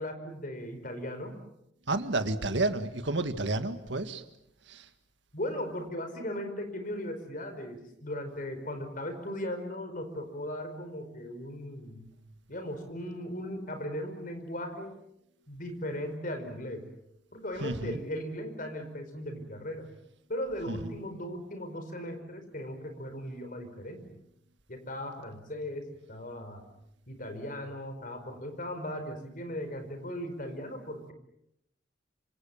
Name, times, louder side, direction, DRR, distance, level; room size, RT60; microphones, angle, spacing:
voice 1, 0.0-1.3 5.3-12.0 12.5-15.0 15.5-16.8 17.3-19.9 20.3-24.0 24.7-26.6 27.1-31.1, left 1 dB, 45° left, 7 dB, 5.0 m, -37 dB
voice 2, 1.9-4.2 4.7-4.8 17.6-18.0 20.7-20.8, right 2 dB, 70° right, 9 dB, 1.9 m, -30 dB
26.5 x 26.0 x 7.3 m, 0.82 s
head